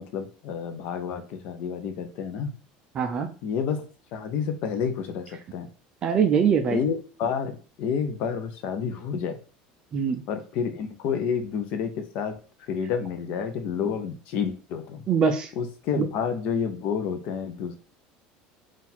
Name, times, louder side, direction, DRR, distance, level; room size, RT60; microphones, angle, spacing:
voice 1, 0.0-2.5 3.4-3.8 4.1-5.7 6.7-9.4 10.3-12.4 12.7-15.0 15.6-17.8, left 7 dB, 50° left, 8 dB, 0.6 m, -29 dB
voice 2, 3.0-3.3 6.0-6.8 9.9-10.2 15.1-15.5 16.0-16.1, right 6 dB, 25° right, 6 dB, 0.4 m, -22 dB
3.8 x 2.5 x 4.3 m, 0.38 s
cardioid pair, 175°, 3 cm